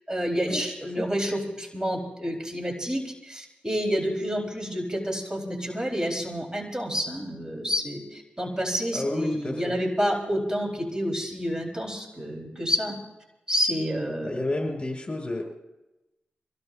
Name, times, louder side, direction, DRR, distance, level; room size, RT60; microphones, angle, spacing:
voice 1, 0.1-13.0 13.5-14.4, equal, 20° right, 0 dB, 4.2 m, -29 dB
voice 2, 8.9-9.7 14.2-15.4, left 2 dB, 30° left, 0 dB, 6.1 m, -30 dB
25.0 x 17.5 x 2.6 m, 0.99 s
cardioid pair, 50°, 3 cm